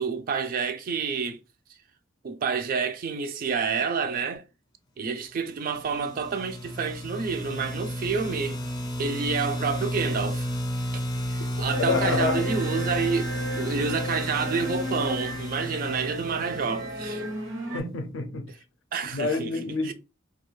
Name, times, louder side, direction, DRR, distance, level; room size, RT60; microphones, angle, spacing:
voice 1, 0.0-1.4 2.2-4.4 5.0-8.6 9.0-10.6 10.9-11.0 11.3-17.2 18.9-19.5 19.8-19.9, right 5 dB, 45° right, 0.3 m, -29 dB
sound 1, 5.8-17.5, equal, 20° left, 0.5 m, -32 dB
sound 2, 11.6-17.8, equal, 80° right, 0.8 m, -34 dB
voice 2, 11.8-12.5 17.7-18.5 19.1-19.9, left 3 dB, 80° left, 0.5 m, -28 dB
2.3 x 2.3 x 3.0 m
head